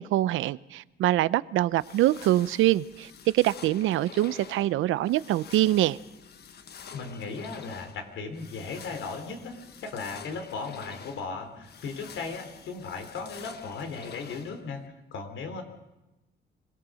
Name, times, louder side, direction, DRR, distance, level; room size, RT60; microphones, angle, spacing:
voice 1, 0.0-6.0, right 15 dB, 85° right, 18 dB, 0.6 m, -24 dB
sound 1, 1.7-14.9, left 7 dB, 55° left, 1.4 m, -48 dB
voice 2, 6.9-14.8 15.1-15.6, left 4 dB, 80° left, 6 dB, 3.7 m, -37 dB
26.0 x 17.5 x 6.3 m, 0.98 s
cardioid pair, 90°, 20 cm